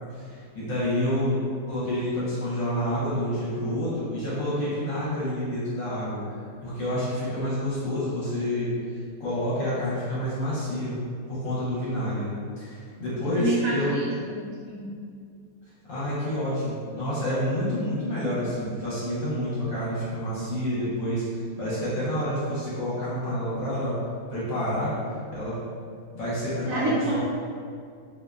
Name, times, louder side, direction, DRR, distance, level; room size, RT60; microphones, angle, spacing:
voice 1, 0.1-1.4 1.7-11.0 11.3-13.9 15.9-21.2 21.6-24.0 24.3-24.9 25.3-25.6 26.1-27.2, left 1 dB, 60° left, -9 dB, 1.0 m, -28 dB
voice 2, 13.3-14.9 26.7-27.2, right 3 dB, 70° right, -8 dB, 0.9 m, -28 dB
2.6 x 2.1 x 2.3 m, 2.2 s
omnidirectional pair, 1.7 m